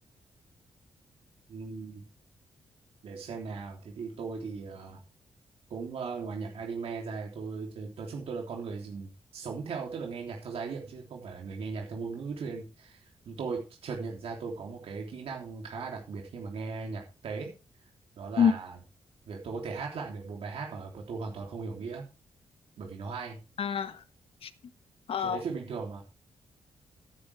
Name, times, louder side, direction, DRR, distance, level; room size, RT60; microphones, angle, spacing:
voice 1, 1.5-2.0 3.0-5.0 5.7-13.0 13.2-17.5 18.2-18.8 19.3-22.0 22.8-23.4 25.2-26.0, right 4 dB, 75° right, 3.3 m, -38 dB
voice 2, 23.6-24.0 24.4-24.5 25.1-25.4, left 7 dB, 70° left, 1.3 m, -26 dB
14.5 x 9.7 x 3.5 m
cardioid pair, 110°, 10 cm